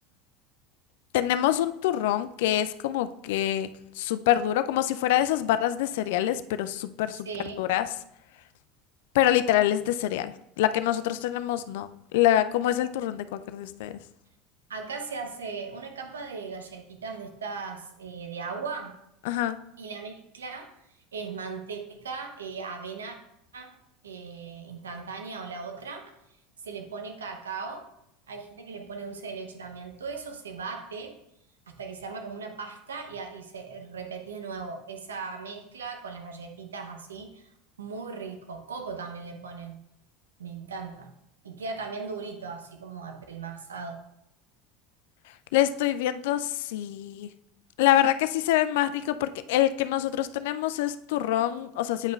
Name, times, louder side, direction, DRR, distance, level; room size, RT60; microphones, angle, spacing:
voice 1, 1.1-3.7 4.0-7.3 7.6-7.8 9.1-13.9 19.3-19.6 45.5-47.3 47.8-52.1, left 12 dB, 70° left, 11 dB, 0.3 m, -25 dB
voice 2, 7.3-7.7 14.7-19.0 19.8-23.2 23.5-23.7 24.0-26.1 26.6-27.9 28.3-31.2 31.7-37.5 37.8-39.8 40.4-41.1 41.4-44.0, right 4 dB, 85° right, 5 dB, 0.8 m, -38 dB
8.9 x 5.3 x 2.3 m, 0.82 s
hypercardioid pair, 80°, 0 cm